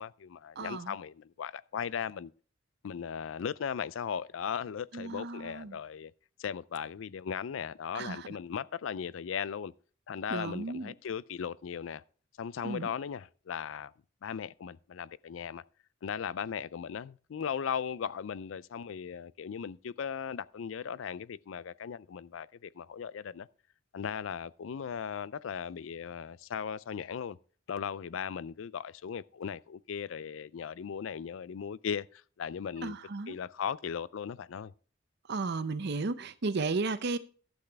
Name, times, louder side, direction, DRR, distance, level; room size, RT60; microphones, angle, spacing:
voice 1, 0.0-2.3 2.8-6.1 6.4-9.7 10.1-12.0 12.4-13.9 14.2-15.6 16.0-23.5 23.9-27.4 27.7-33.0 33.3-34.7, left 7 dB, 75° left, 0.4 m, -37 dB
voice 2, 0.6-1.0 4.9-5.8 7.9-8.3 10.3-10.9 12.6-12.9 32.8-33.4 35.3-37.2, right 3 dB, 60° right, 0.7 m, -34 dB
12.0 x 8.0 x 3.5 m
head